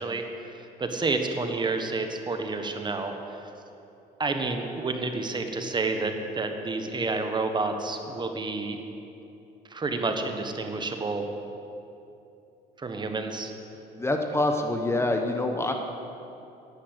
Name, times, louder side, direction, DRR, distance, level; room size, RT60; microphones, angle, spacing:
voice 1, 0.0-3.4 4.2-8.8 9.7-11.3 12.8-13.5, right 3 dB, 25° right, 5 dB, 1.3 m, -30 dB
voice 2, 13.9-15.7, left 2 dB, 15° left, 4 dB, 0.9 m, -26 dB
11.0 x 10.5 x 8.1 m, 2.8 s
cardioid pair, 110°, 17 cm